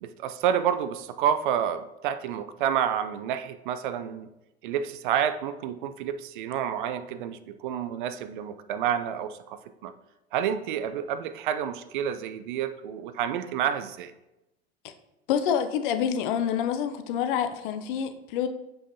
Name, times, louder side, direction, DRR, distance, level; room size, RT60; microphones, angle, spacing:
voice 1, 0.0-4.3 4.6-9.9 10.3-14.1, right 9 dB, 50° right, 11 dB, 0.5 m, -29 dB
voice 2, 15.3-18.5, left 8 dB, 50° left, 9 dB, 0.6 m, -27 dB
7.1 x 5.4 x 2.8 m, 0.95 s
figure-of-eight pair, 85°, 34 cm